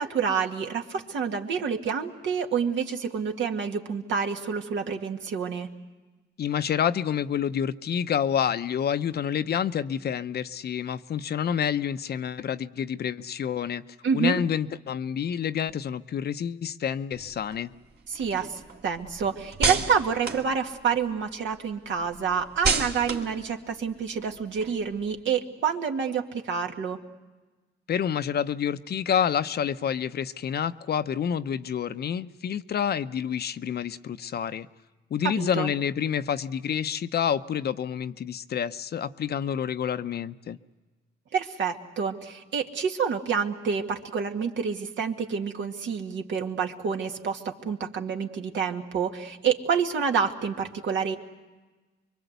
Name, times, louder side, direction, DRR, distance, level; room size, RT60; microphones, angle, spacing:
voice 1, 0.0-5.7 14.0-14.4 18.1-27.0 35.4-35.7 41.3-51.2, right 6 dB, 70° right, 3 dB, 2.1 m, -28 dB
voice 2, 6.4-13.8 14.1-17.7 27.9-34.7 35.1-40.6, left 8 dB, 55° left, 11 dB, 0.8 m, -28 dB
sound 1, 17.1-21.3 21.7-25.1, right 5 dB, 55° right, 2.4 m, -32 dB
25.0 x 23.5 x 8.1 m, 1.2 s
cardioid pair, 90°, 20 cm